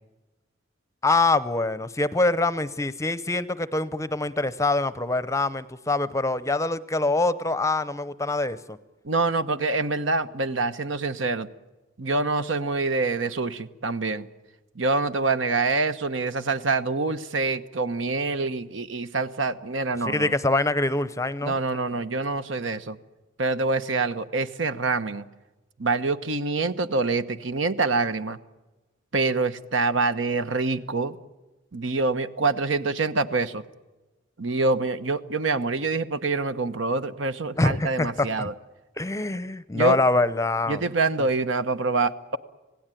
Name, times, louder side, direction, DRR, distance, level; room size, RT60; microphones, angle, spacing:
voice 1, 1.0-8.8 20.1-21.5 37.6-38.5 39.0-40.8 41.2-41.3, left 2 dB, 15° left, 15 dB, 0.7 m, -24 dB
voice 2, 9.0-11.5 12.0-14.3 14.8-20.3 21.4-23.0 23.4-25.2 25.8-28.4 29.1-31.2 31.7-33.6 34.4-38.5 39.7-40.0 40.7-42.4, right 3 dB, 65° right, 11 dB, 1.1 m, -26 dB
26.5 x 17.5 x 9.2 m, 1.1 s
head